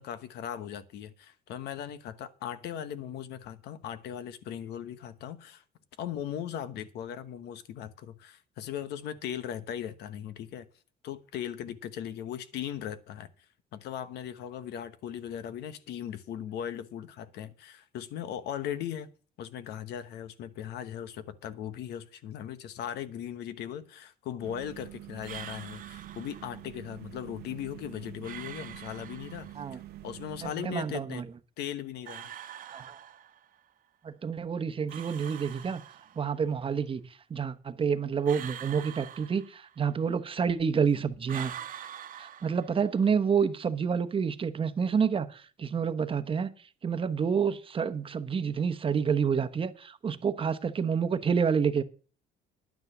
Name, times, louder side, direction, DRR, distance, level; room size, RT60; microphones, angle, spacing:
voice 1, 0.0-5.6 6.0-10.7 11.0-13.3 13.7-19.1 19.4-31.2 31.6-32.3, left 10 dB, 80° left, 1.1 m, -38 dB
sound 1, 24.4-30.5, right 14 dB, 70° right, 0.9 m, -46 dB
sound 2, 25.2-26.7 28.2-29.7 32.0-33.6 34.9-36.4 38.2-40.0 41.3-43.1, right 10 dB, 55° right, 1.2 m, -45 dB
voice 2, 30.4-31.2 32.7-33.0 34.0-35.8 36.2-41.5 42.2-46.5 46.8-51.8, right 6 dB, 30° right, 1.0 m, -28 dB
10.5 x 9.5 x 6.0 m
cardioid pair, 110°, 17 cm